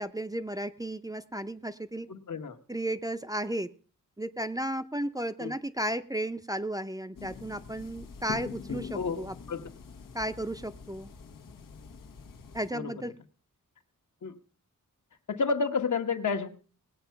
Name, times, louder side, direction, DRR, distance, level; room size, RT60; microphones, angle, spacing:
voice 1, 0.0-2.1 2.7-3.7 4.2-9.3 10.1-11.1 12.5-13.1, right 1 dB, 10° right, 8 dB, 0.6 m, -34 dB
voice 2, 2.1-2.6 5.4-5.5 8.9-9.6 12.7-13.1 14.2-14.3 15.3-16.5, left 5 dB, 65° left, 5 dB, 1.5 m, -31 dB
sound 1, 7.2-12.7, left 6 dB, 85° left, 1.4 m, -44 dB
19.0 x 8.4 x 5.8 m, 0.42 s
wide cardioid pair, 125°, 32 cm